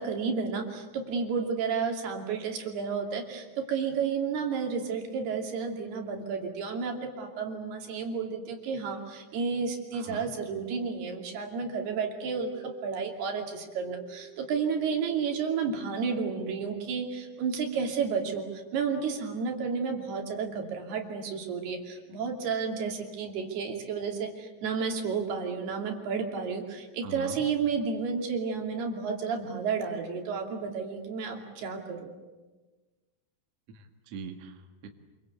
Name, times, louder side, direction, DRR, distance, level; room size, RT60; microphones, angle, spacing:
voice 1, 0.0-32.1, right 5 dB, 65° right, 2 dB, 4.6 m, -31 dB
voice 2, 9.9-10.3 27.0-27.5 33.7-34.9, right 4 dB, 50° right, 4 dB, 2.2 m, -42 dB
sound 1, 11.8-16.7, right 11 dB, 85° right, 1.8 m, -51 dB
27.0 x 23.5 x 8.3 m, 1.2 s
omnidirectional pair, 5.0 m